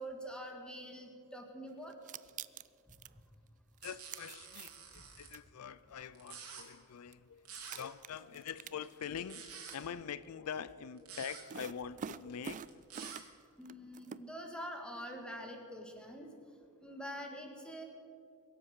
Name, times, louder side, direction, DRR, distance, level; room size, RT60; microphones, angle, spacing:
voice 1, 0.0-1.9 5.0-5.1 13.6-16.3 16.8-17.8, equal, 5° left, 1.8 m, -45 dB
sound 1, 1.9-3.1 3.8-5.0 5.3-5.4 6.6-6.7 7.1-7.2 7.5-9.2 9.5-9.8 11.5-13.4 13.7-14.2, right 7 dB, 35° right, 0.3 m, -46 dB
voice 2, 3.8-13.1 16.9-17.0, left 7 dB, 80° left, 0.4 m, -45 dB
sound 2, 3.8-5.3 6.1-6.6 7.4-7.8 9.0-9.8 11.0-11.4 12.5-13.2, right 6 dB, 75° right, 2.8 m, -49 dB
23.0 x 8.1 x 6.5 m
head